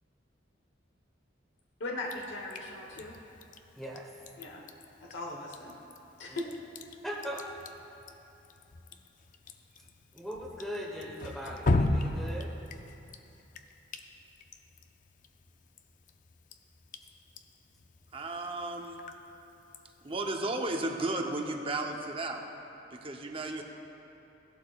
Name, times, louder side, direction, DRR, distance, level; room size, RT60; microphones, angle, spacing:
voice 1, 1.8-3.2 4.4-4.6 5.0-5.8 6.2-6.5, left 2 dB, 75° left, -1 dB, 1.0 m, -39 dB
Drip, 2.0-20.3, left 2 dB, 45° left, 0.4 m, -38 dB
voice 2, 3.8-4.1 6.3-6.4 7.0-7.4 10.1-12.5, equal, ahead, -1 dB, 1.0 m, -39 dB
voice 3, 18.1-19.0 20.0-22.4 22.9-23.6, right 2 dB, 30° right, 3 dB, 0.7 m, -34 dB
16.5 x 11.5 x 2.4 m, 3.0 s
head